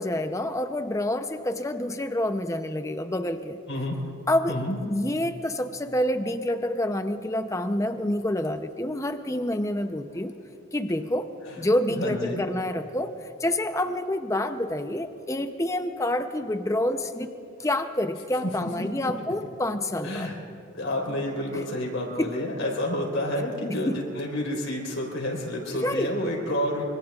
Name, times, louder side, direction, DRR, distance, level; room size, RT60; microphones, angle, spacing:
voice 1, 0.0-3.6 4.3-10.3 10.7-11.3 11.6-13.1 13.4-17.3 17.6-20.3 21.5-21.6 22.2-22.3 23.7-24.0 25.7-26.1, left 1 dB, 15° left, 8 dB, 0.6 m, -28 dB
voice 2, 4.5-4.8 11.5-11.6 11.9-12.4 18.4-18.5 18.8-18.9 20.0-20.3 20.7-26.8, left 1 dB, 75° left, -1 dB, 3.8 m, -29 dB
25.5 x 23.5 x 2.4 m, 2.7 s
head